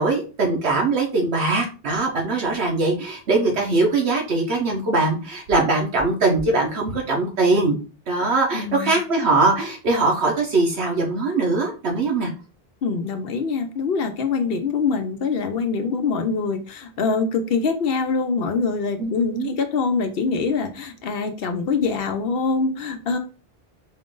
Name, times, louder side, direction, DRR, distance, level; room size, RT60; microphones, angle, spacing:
voice 1, 0.0-7.8 8.1-12.3 19.0-19.5, right 3 dB, 80° right, 0 dB, 1.2 m, -21 dB
voice 2, 8.5-9.0 12.8-23.2, left 4 dB, 65° left, 7 dB, 0.8 m, -24 dB
4.3 x 2.5 x 3.7 m, 0.36 s
omnidirectional pair, 1.1 m